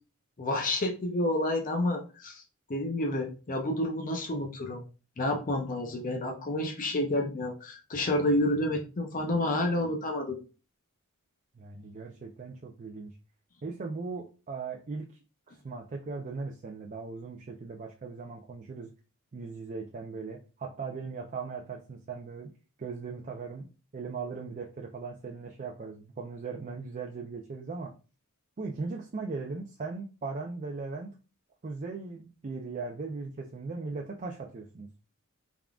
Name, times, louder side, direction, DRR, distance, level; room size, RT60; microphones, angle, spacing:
voice 1, 0.4-2.4 2.7-4.8 5.2-10.4, left 1 dB, 40° left, 2 dB, 0.6 m, -29 dB
voice 2, 11.6-13.1 13.6-15.1 15.5-18.9 19.3-22.5 22.8-23.7 23.9-27.9 28.6-31.2 31.6-34.9, right 4 dB, 35° right, 1 dB, 0.4 m, -38 dB
3.6 x 3.5 x 2.3 m, 0.33 s
head